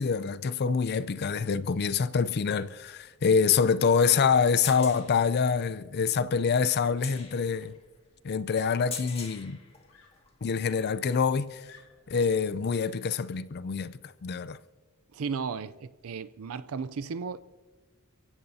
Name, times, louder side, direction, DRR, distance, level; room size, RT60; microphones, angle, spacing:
voice 1, 0.0-7.8 8.2-9.6 10.4-11.7 12.1-14.6, left 6 dB, 45° left, 0.4 m, -26 dB
sound 1, 3.1-10.4 10.9-11.7 13.0-13.1, left 6 dB, 25° left, 1.9 m, -45 dB
Screaming, 8.0-8.1 8.9-9.6 9.9-12.2 13.2-13.4, left 5 dB, 80° left, 3.6 m, -58 dB
voice 2, 15.1-17.4, right 5 dB, 70° right, 0.5 m, -35 dB
29.5 x 16.0 x 2.8 m
head